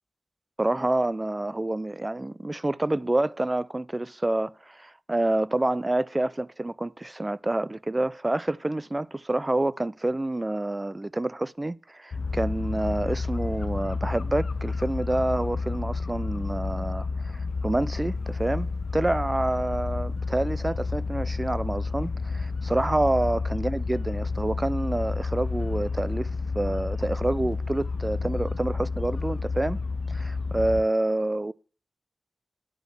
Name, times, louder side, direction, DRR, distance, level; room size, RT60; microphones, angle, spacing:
voice 1, 0.6-26.3 26.5-29.8 30.1-31.5, right 2 dB, 25° right, 0.5 m, -28 dB
sound 1, 12.1-30.8, left 4 dB, 80° left, 0.5 m, -30 dB
9.9 x 5.2 x 7.8 m
cardioid pair, 55°, 0 cm